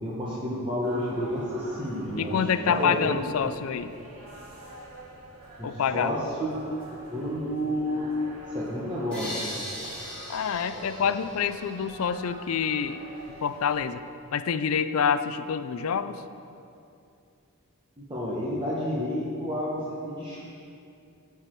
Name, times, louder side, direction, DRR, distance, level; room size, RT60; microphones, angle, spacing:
voice 1, 0.0-3.2 5.6-6.5 7.1-8.1 8.5-9.5 10.7-10.8 18.0-20.5, equal, 20° right, -8 dB, 1.1 m, -30 dB
sound 1, 0.8-13.8, right 1 dB, 65° right, 1.8 m, -47 dB
voice 2, 2.2-3.9 5.6-6.2 10.3-13.0 13.4-14.0 14.3-16.2, left 7 dB, 65° left, 12 dB, 0.4 m, -27 dB
sound 2, 9.1-12.1, equal, 5° left, 2.2 m, -39 dB
13.5 x 4.8 x 4.4 m, 2.6 s
head